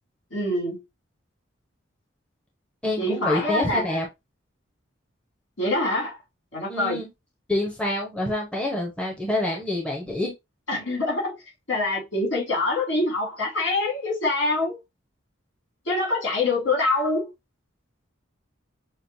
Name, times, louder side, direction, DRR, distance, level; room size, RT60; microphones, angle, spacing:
voice 1, 0.3-0.8 3.0-4.0 5.6-6.2 6.5-7.0 10.7-11.4 11.7-14.8 15.8-17.3, left 2 dB, 70° left, 3.1 m, -25 dB
voice 2, 2.8-4.1 6.7-7.1 7.5-10.3, left 1 dB, 5° left, 1.0 m, -27 dB
6.3 x 2.5 x 2.7 m
head